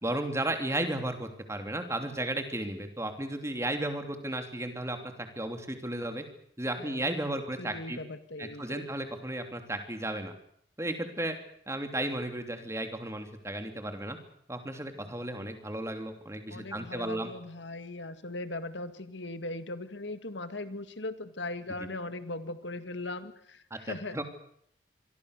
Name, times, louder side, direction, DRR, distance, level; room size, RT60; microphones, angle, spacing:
voice 1, 0.0-6.2 6.6-8.0 8.4-10.3 10.8-11.4 11.7-14.2 14.5-17.3 23.7-24.2, right 1 dB, 15° right, 6 dB, 3.0 m, -34 dB
voice 2, 6.8-8.9 15.0-15.2 16.5-24.2, left 2 dB, 85° left, 10 dB, 2.0 m, -39 dB
26.0 x 23.0 x 6.7 m, 0.69 s
head